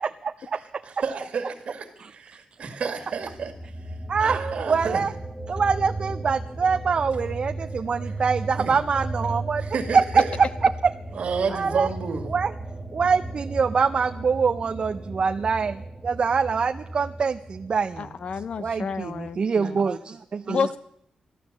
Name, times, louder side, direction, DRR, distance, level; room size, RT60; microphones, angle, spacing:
voice 1, 0.0-0.6 2.0-2.1 4.1-4.4 4.7-5.1 5.5-9.7 9.9-10.7 11.5-11.9 12.3-12.5 12.9-18.1 18.6-20.7, right 5 dB, 45° right, 7 dB, 0.5 m, -24 dB
voice 2, 0.5-3.5 4.2-5.0 8.0-8.1 8.6-8.7 9.6-10.4 11.2-12.3, right 5 dB, 65° right, 6 dB, 2.1 m, -30 dB
sound 1, 3.2-19.4, right 2 dB, 5° left, 1.4 m, -35 dB
voice 3, 18.0-19.9 20.5-20.8, left 5 dB, 55° left, 15 dB, 0.6 m, -30 dB
14.5 x 11.5 x 7.3 m, 0.74 s
wide cardioid pair, 150°, 2 cm